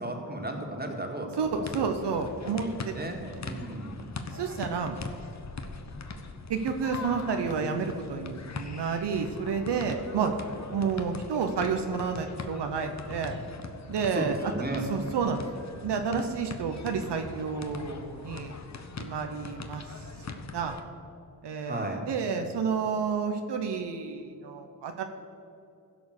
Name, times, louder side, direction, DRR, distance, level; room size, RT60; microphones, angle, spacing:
voice 1, 0.0-1.8 2.4-2.6 2.9-4.0 14.1-14.8 21.6-22.0, right 2 dB, 25° right, 2 dB, 2.0 m, -35 dB
sound 1, 1.4-20.8, left 3 dB, 40° left, 1.0 m, -41 dB
voice 2, 1.4-3.1 4.3-5.0 6.5-10.3 10.7-13.4 13.9-14.4 14.9-15.4 15.8-18.5 19.0-20.8 21.4-25.0, right 5 dB, 85° right, 5 dB, 0.8 m, -30 dB
15.5 x 5.2 x 6.5 m, 2.6 s
cardioid pair, 55°, 41 cm